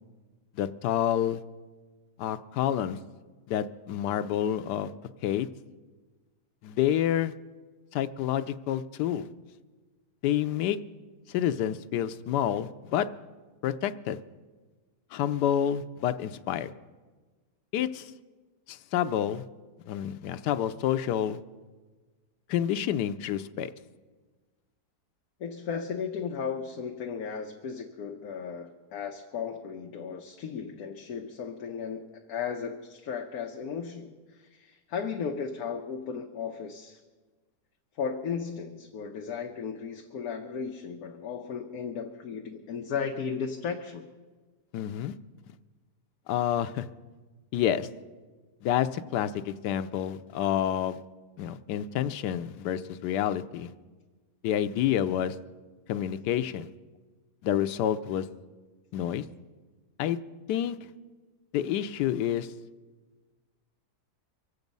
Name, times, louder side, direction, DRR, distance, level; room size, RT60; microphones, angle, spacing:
voice 1, 0.6-1.4 2.2-3.0 3.5-4.9 5.2-5.5 6.6-7.3 7.9-9.3 10.2-10.8 11.3-13.1 13.6-14.2 15.1-16.7 17.7-18.1 18.7-19.4 19.9-21.4 22.5-23.7 44.7-45.1 46.3-46.8 47.5-47.9 48.6-51.0 51.4-53.7 54.4-55.4 55.9-56.7 57.4-58.3 58.9-59.2 60.0-60.2 60.5-60.8 61.5-62.5, left 10 dB, 85° left, 11 dB, 1.2 m, -28 dB
voice 2, 25.4-37.0 38.0-44.1, left 6 dB, 65° left, 3 dB, 1.3 m, -35 dB
25.0 x 8.3 x 5.3 m, 1.3 s
omnidirectional pair, 1.7 m